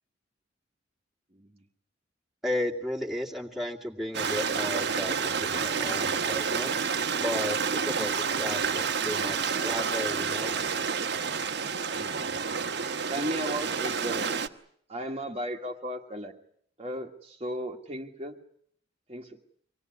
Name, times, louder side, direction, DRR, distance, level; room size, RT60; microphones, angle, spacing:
voice 1, 2.4-6.8 7.2-10.6, left 1 dB, ahead, -1 dB, 2.2 m, -34 dB
Stream, 4.1-14.5, right 6 dB, 60° right, 1.3 m, -29 dB
voice 2, 13.1-14.4 14.9-16.3 16.8-18.4 19.1-19.4, equal, 30° right, 2 dB, 1.6 m, -35 dB
25.5 x 18.5 x 9.6 m, 0.65 s
head